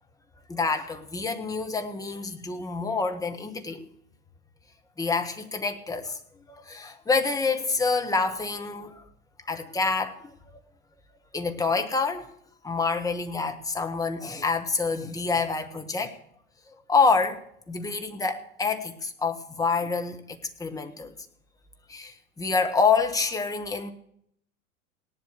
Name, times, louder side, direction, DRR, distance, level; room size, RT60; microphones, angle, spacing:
voice 1, 0.5-3.9 5.0-6.2 6.5-9.0 9.5-10.3 11.3-12.3 12.6-16.1 16.9-21.1 21.9-23.9, left 4 dB, 10° left, 5 dB, 1.5 m, -27 dB
17.5 x 11.0 x 6.7 m, 0.69 s
figure-of-eight pair, 105°, 43 cm